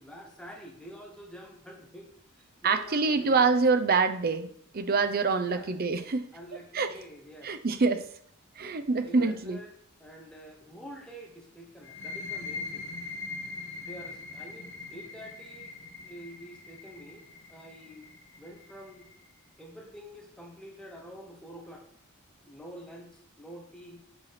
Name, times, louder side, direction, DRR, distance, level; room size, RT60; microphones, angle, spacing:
voice 1, 0.0-3.5 5.4-5.7 6.3-7.5 9.0-9.7 10.0-12.9 13.8-15.7 16.0-18.1 18.4-19.1 19.6-21.9 22.4-24.1, equal, 5° left, 1 dB, 1.1 m, -47 dB
voice 2, 2.6-4.5 4.7-6.3 6.7-6.9 7.4-8.1 8.6-9.6, right 4 dB, 45° right, 9 dB, 0.6 m, -25 dB
sound 1, 11.8-19.3, left 4 dB, 50° left, 1.2 m, -42 dB
7.7 x 4.6 x 5.8 m, 0.63 s
head